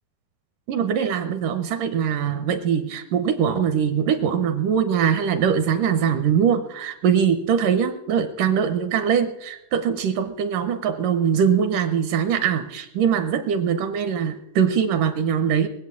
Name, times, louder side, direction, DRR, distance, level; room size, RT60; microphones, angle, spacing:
voice 1, 0.7-15.7, right 7 dB, 75° right, 10 dB, 2.1 m, -22 dB
21.0 x 8.0 x 8.3 m, 0.87 s
omnidirectional pair, 4.5 m